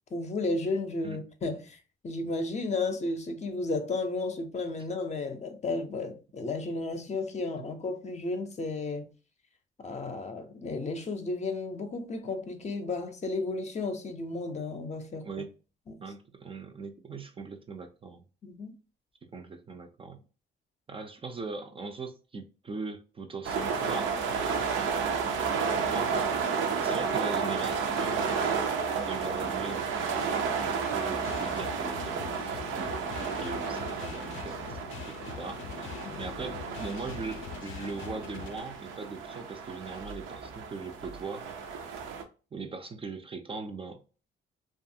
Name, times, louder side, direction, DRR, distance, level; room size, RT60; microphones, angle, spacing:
voice 1, 0.1-9.1 9.8-15.3 15.9-16.0 18.4-18.7 36.0-36.3, left 3 dB, 35° left, 0.6 m, -33 dB
voice 2, 16.0-18.2 19.3-20.2 20.9-24.2 25.9-26.3 26.8-28.3 29.1-29.9 30.6-35.9 36.2-41.5 42.5-44.0, right 4 dB, 25° right, 0.4 m, -40 dB
sound 1, 23.4-42.2, right 5 dB, 80° right, 0.6 m, -32 dB
sound 2, 31.2-38.6, left 9 dB, 80° left, 0.4 m, -43 dB
2.7 x 2.4 x 2.6 m
cardioid pair, 90°, 20 cm